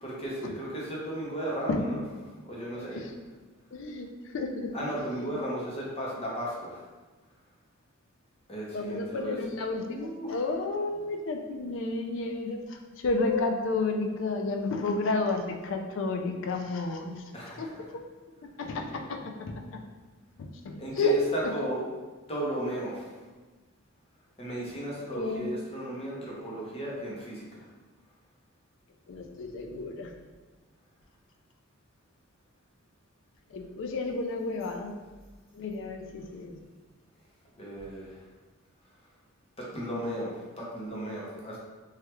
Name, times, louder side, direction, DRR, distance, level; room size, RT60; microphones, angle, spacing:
voice 1, 0.0-2.0 2.4-3.0 4.7-6.8 8.5-9.4 9.9-10.3 17.3-17.7 20.8-21.9 22.3-23.1 24.4-27.7 37.6-38.1 39.6-41.6, right 1 dB, 25° left, -5 dB, 0.7 m, -35 dB
voice 2, 3.7-5.4 8.7-17.3 17.6-18.0 18.4-19.8 20.4-21.7 25.1-25.5 29.1-30.1 33.5-34.9 35.5-36.6, left 3 dB, 60° left, 4 dB, 0.3 m, -32 dB
3.2 x 2.3 x 2.9 m, 1.2 s
head